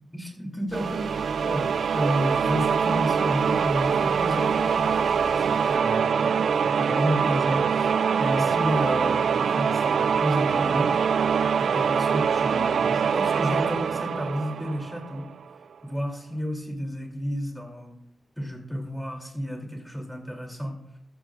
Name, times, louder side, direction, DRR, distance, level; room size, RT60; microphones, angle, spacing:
voice 1, 0.1-1.7 1.9-10.9 11.6-15.3 15.8-18.0 18.4-20.8, equal, 5° left, 1 dB, 2.9 m, -31 dB
sound 1, 0.7-5.8, left 1 dB, 50° left, 4.6 m, -45 dB
sound 2, 0.7-15.3, right 6 dB, 85° right, 0.3 m, -24 dB
15.0 x 13.5 x 2.5 m, 0.74 s
wide cardioid pair, 150°, 0 cm